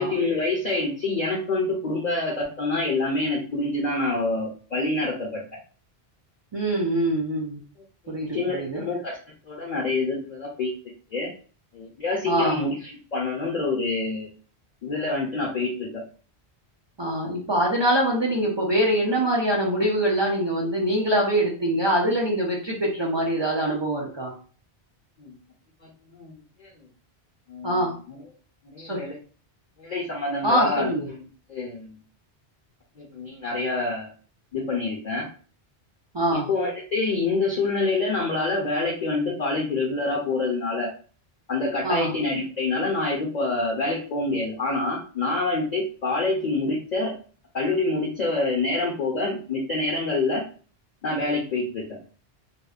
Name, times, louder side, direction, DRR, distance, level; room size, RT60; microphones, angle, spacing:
voice 1, 0.0-5.4 8.1-9.2 9.5-10.7 11.1-11.3 11.7-12.7 13.1-14.3 14.8-16.0 25.2-25.3 26.1-26.7 27.5-28.2 28.6-29.1 29.8-32.0 33.0-34.1 34.5-35.3 36.3-40.9 41.5-47.1 47.5-50.4 51.0-51.8, left 3 dB, 50° left, -2 dB, 0.6 m, -26 dB
voice 2, 6.5-7.6 8.1-8.8 12.3-12.7 17.0-24.3 27.6-27.9 28.8-29.0 30.4-31.1 36.1-36.5 41.8-42.2, right 1 dB, 45° right, -2 dB, 0.3 m, -24 dB
2.7 x 2.0 x 2.3 m, 0.40 s
omnidirectional pair, 1.1 m